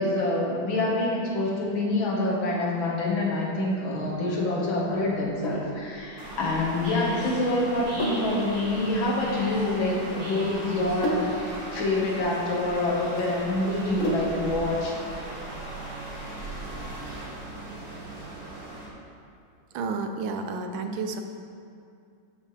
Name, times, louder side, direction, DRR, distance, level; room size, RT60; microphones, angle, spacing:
voice 1, 0.0-15.0, left 2 dB, 75° left, -3 dB, 2.1 m, -26 dB
Sink (filling or washing), 5.1-14.6, left 1 dB, 50° left, 1.3 m, -34 dB
sound 1, 6.2-18.9, right 1 dB, 50° right, 1.9 m, -38 dB
voice 2, 19.7-21.2, right 4 dB, 80° right, 6 dB, 1.4 m, -31 dB
11.5 x 5.7 x 3.2 m, 2.4 s
omnidirectional pair, 2.2 m